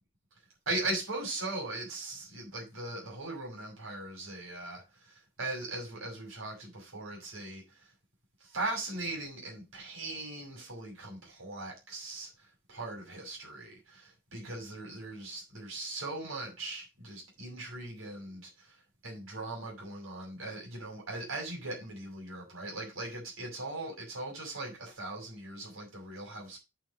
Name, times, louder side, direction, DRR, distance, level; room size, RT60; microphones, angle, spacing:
voice 1, 0.7-7.8 8.4-12.3 12.7-18.7 19.0-26.6, right 2 dB, 70° right, 6.1 m, -39 dB
8.9 x 5.1 x 6.7 m
head